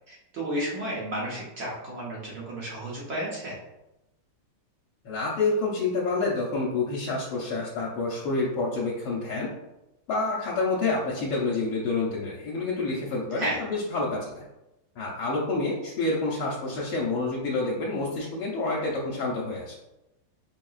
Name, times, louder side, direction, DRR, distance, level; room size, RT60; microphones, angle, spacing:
voice 1, 0.1-3.6 13.3-13.6, right 1 dB, 80° right, -5 dB, 0.5 m, -32 dB
voice 2, 5.0-9.5 10.1-14.5 15.0-19.8, left 3 dB, 75° left, -4 dB, 1.4 m, -28 dB
5.4 x 2.8 x 2.3 m, 0.94 s
omnidirectional pair, 2.3 m